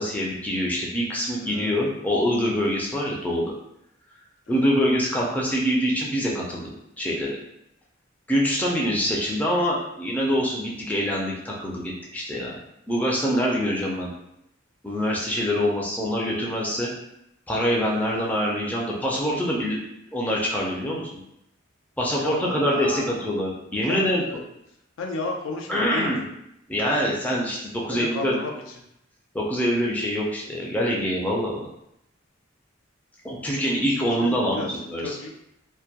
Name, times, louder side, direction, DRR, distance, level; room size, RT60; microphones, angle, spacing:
voice 1, 0.0-3.4 4.5-6.7 7.0-7.4 8.3-12.6 12.9-14.1 14.8-16.9 17.5-19.8 20.1-21.1 22.0-24.2 25.7-26.2 26.7-28.4 29.3-31.7 33.2-35.0, equal, 10° left, -4 dB, 0.4 m, -25 dB
voice 2, 1.4-1.9 4.5-4.8 22.2-23.3 23.9-24.4 25.0-26.3 27.9-28.7 33.5-35.3, left 3 dB, 70° left, 1 dB, 0.4 m, -34 dB
2.2 x 2.1 x 2.7 m, 0.79 s
head